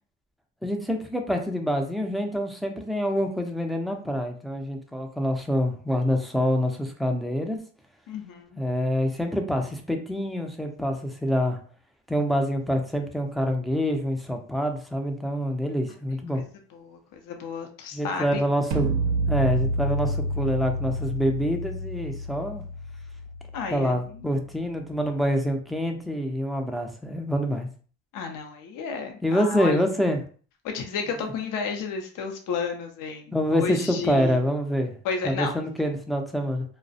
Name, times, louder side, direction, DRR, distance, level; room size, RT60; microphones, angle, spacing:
voice 1, 0.6-7.6 8.6-11.6 12.1-16.4 17.9-18.9 19.3-22.6 23.7-27.7 29.2-30.2 31.2-31.3 33.3-34.9 35.2-36.6, equal, ahead, 3 dB, 0.4 m, -26 dB
voice 2, 8.1-8.6 16.3-16.5 16.7-18.4 23.5-24.3 28.1-29.8 30.6-34.4 35.0-35.5, left 5 dB, 60° left, 4 dB, 0.5 m, -32 dB
sound 1, 18.7-24.7, right 1 dB, 75° right, 0.5 m, -29 dB
2.3 x 2.0 x 2.6 m, 0.42 s
supercardioid pair, 80°, 36 cm